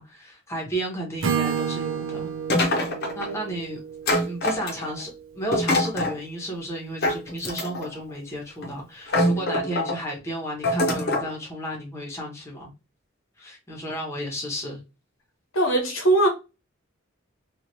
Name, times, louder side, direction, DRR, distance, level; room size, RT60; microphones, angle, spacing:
voice 1, 0.0-2.3 3.1-3.8 4.2-12.7 13.4-14.8, equal, 15° left, 1.0 m, -33 dB
Acoustic guitar / Strum, 1.2-5.2, right 7 dB, 80° right, 0.5 m, -30 dB
sound 1, 2.5-3.3 4.1-5.0 5.5-6.2 7.0-7.9 8.6-8.7 9.1-10.0 10.6-11.3, left 1 dB, 50° left, 0.8 m, -24 dB
voice 2, 15.5-16.3, right 2 dB, 80° left, 1.1 m, -20 dB
3.1 x 2.4 x 2.7 m
head